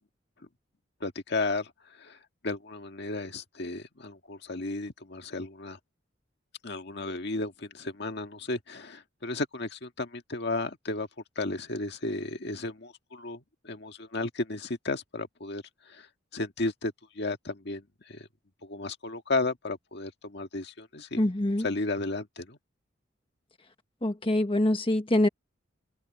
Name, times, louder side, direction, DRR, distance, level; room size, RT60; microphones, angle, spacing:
voice 1, 1.0-1.7 2.0-2.2 2.4-5.8 6.6-11.1 11.3-16.1 16.3-18.3 18.6-21.2 21.6-22.6, left 2 dB, 60° left, 1.8 m, -34 dB
voice 2, 21.2-21.7 24.0-25.3, left 1 dB, 30° left, 1.3 m, -24 dB
head